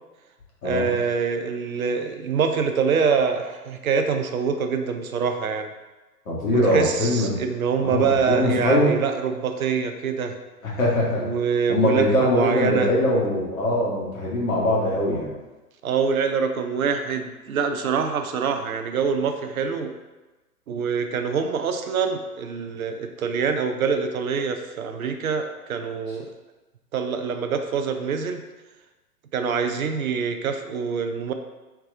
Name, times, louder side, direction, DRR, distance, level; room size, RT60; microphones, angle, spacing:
voice 1, 0.6-5.7 6.5-10.4 11.2-12.9 15.8-19.9 20.7-26.3 26.9-28.4 29.3-31.3, right 6 dB, 60° right, 6 dB, 0.6 m, -25 dB
voice 2, 6.3-7.4 7.8-9.0 10.6-11.2 11.7-15.3, left 1 dB, 55° left, -4 dB, 1.4 m, -22 dB
3.4 x 3.3 x 3.6 m, 1.1 s
figure-of-eight pair, 115°, 48 cm